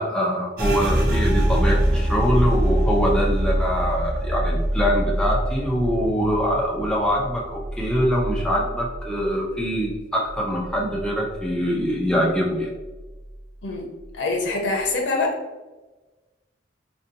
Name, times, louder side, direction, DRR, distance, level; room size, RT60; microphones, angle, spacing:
voice 1, 0.0-12.7, equal, 5° left, -3 dB, 0.4 m, -23 dB
sound 1, 0.6-10.0 10.3-11.5 11.8-12.3 12.8-13.3, right 1 dB, 50° right, 0.5 m, -24 dB
voice 2, 14.1-15.4, left 3 dB, 80° left, 1 dB, 0.6 m, -24 dB
2.6 x 2.2 x 2.6 m, 1.2 s
head